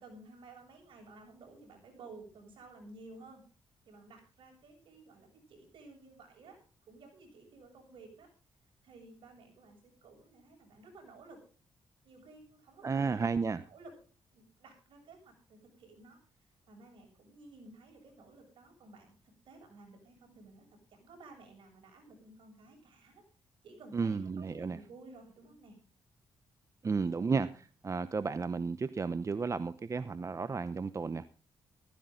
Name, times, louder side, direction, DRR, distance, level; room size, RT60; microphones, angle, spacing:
voice 1, 0.0-3.4 3.9-6.6 6.9-8.3 8.8-11.4 12.0-13.4 13.7-13.9 14.3-16.2 16.7-19.2 19.4-23.2 23.6-25.8, right 3 dB, 75° right, 2 dB, 7.7 m, -54 dB
voice 2, 12.8-13.7 23.9-24.8 26.8-31.3, right 4 dB, 35° right, 13 dB, 0.8 m, -33 dB
15.0 x 15.0 x 3.9 m, 0.36 s
cardioid pair, 65°, 9 cm